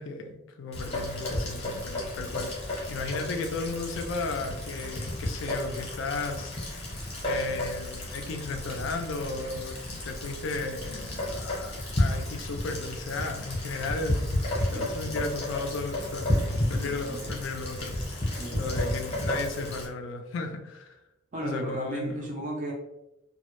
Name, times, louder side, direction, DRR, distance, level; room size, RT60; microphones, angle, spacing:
voice 1, 0.0-6.8 7.2-21.0 21.4-22.3, left 3 dB, 60° left, 6 dB, 0.3 m, -35 dB
Rain, 0.7-19.9, left 1 dB, 30° left, 0.7 m, -32 dB
voice 2, 14.8-15.2 16.7-17.3 18.4-18.8 21.3-22.7, right 1 dB, 35° right, -2 dB, 0.4 m, -35 dB
2.1 x 2.0 x 2.9 m, 0.91 s
head